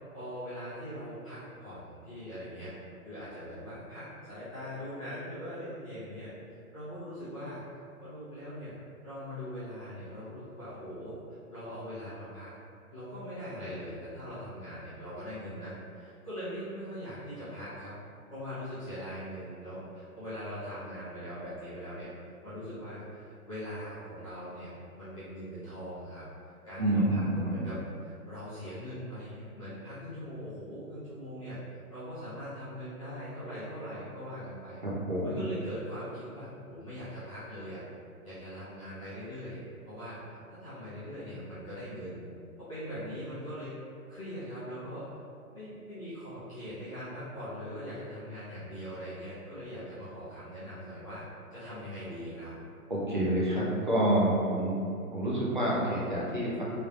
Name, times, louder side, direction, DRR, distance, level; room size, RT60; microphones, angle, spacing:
voice 1, 0.1-2.7 3.0-6.3 6.7-7.7 8.0-11.1 11.5-12.5 12.9-17.9 18.3-22.1 22.4-24.7 24.9-26.2 26.6-31.6 31.9-34.8 35.2-37.8 38.2-39.6 39.9-40.2 40.5-42.2 42.6-43.7 44.1-45.1 45.5-51.2 51.5-52.5, equal, 25° left, -16 dB, 0.8 m, -41 dB
voice 2, 26.8-27.7 34.8-35.5 52.9-56.6, right 1 dB, 35° right, -7 dB, 0.5 m, -28 dB
3.3 x 3.0 x 2.4 m, 2.4 s
hypercardioid pair, 175°, 45 cm